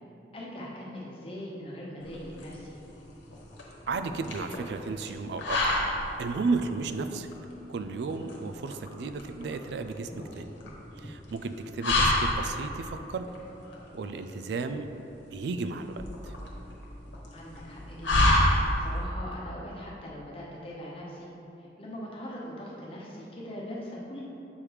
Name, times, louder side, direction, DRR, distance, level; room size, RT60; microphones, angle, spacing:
voice 1, 0.3-2.8 17.3-21.3 21.6-24.2, equal, 30° left, -4 dB, 1.0 m, -41 dB
sound 1, 2.0-19.0, left 1 dB, 80° left, 1.1 m, -30 dB
voice 2, 3.9-5.8 6.2-7.3 7.7-10.5 11.0-13.3 13.9-14.9 15.3-16.3, right 4 dB, 65° right, 9 dB, 0.3 m, -33 dB
7.2 x 3.4 x 4.7 m, 3.0 s
head